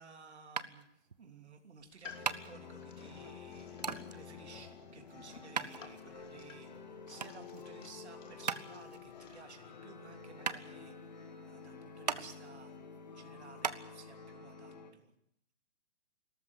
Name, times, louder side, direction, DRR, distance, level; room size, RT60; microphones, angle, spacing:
voice 1, 0.0-15.1, right 5 dB, 60° right, 5 dB, 3.2 m, -56 dB
sound 1, 0.6-13.8, right 6 dB, 35° right, 0.8 m, -41 dB
sound 2, 1.8-9.4, left 5 dB, 80° left, 3.1 m, -55 dB
sound 3, 2.0-14.9, left 5 dB, 35° left, 2.1 m, -50 dB
26.5 x 13.5 x 8.4 m, 0.75 s
hypercardioid pair, 175°, 37 cm